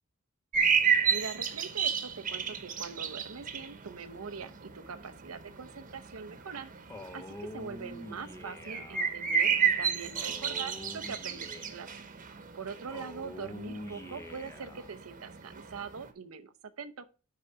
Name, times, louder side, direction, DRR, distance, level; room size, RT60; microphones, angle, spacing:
sound 1, 0.5-16.1, right 7 dB, 40° right, 1.0 m, -32 dB
voice 1, 1.1-6.7 7.1-11.9 12.5-17.1, right 5 dB, 90° right, 0.7 m, -43 dB
Male speech man speaking, 6.9-9.1 10.1-12.0 12.9-14.9, left 1 dB, 15° left, 0.6 m, -46 dB
9.9 x 3.8 x 4.6 m
head